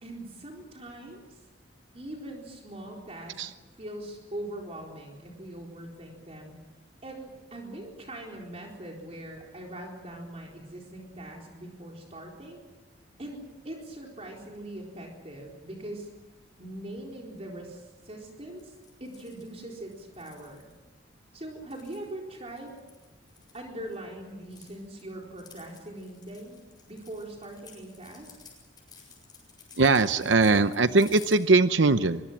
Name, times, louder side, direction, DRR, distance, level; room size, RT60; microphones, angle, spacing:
voice 1, 0.0-1.2 1.9-3.4 3.8-6.6 7.0-12.6 13.2-16.1 16.6-18.7 19.0-20.7 21.3-22.8 23.5-26.6 26.9-28.3, right 1 dB, 35° right, 0 dB, 4.2 m, -41 dB
sound 1, 18.6-20.7 21.5-24.0 24.3-31.4, left 6 dB, 20° left, 7.6 m, -53 dB
voice 2, 29.8-32.2, right 3 dB, 70° right, 11 dB, 0.8 m, -21 dB
24.0 x 23.0 x 7.5 m, 1.2 s
head